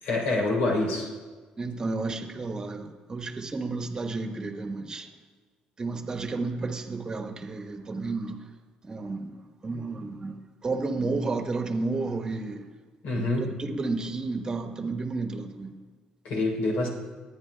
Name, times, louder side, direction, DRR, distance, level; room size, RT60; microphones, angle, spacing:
voice 1, 0.0-1.1 13.0-13.5 16.2-16.9, left 2 dB, 80° left, -1 dB, 3.4 m, -26 dB
voice 2, 1.6-5.1 5.8-8.4 8.9-9.3 9.6-10.3 10.6-12.6 13.4-15.7, right 3 dB, 30° right, 4 dB, 1.2 m, -31 dB
21.5 x 9.6 x 2.2 m, 1.4 s
cardioid pair, 95°, 3 cm